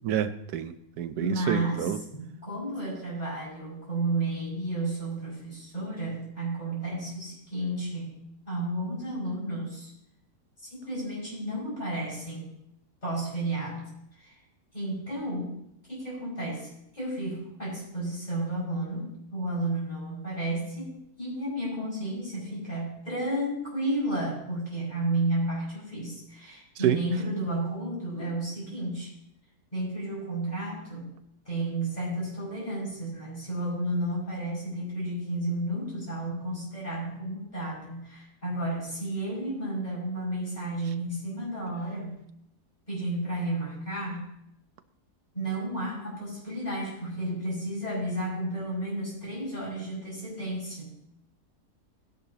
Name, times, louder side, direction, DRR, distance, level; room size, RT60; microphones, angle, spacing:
voice 1, 0.0-2.0 26.8-27.0, right 10 dB, 75° right, 11 dB, 1.2 m, -28 dB
voice 2, 1.2-8.2 8.5-9.9 10.6-12.5 13.0-14.4 14.7-15.6 15.9-29.1 29.7-31.2 31.5-42.2 42.9-44.3 45.3-51.0, right 1 dB, 25° left, -5 dB, 5.9 m, -32 dB
18.0 x 10.5 x 2.8 m, 0.78 s
omnidirectional pair, 1.7 m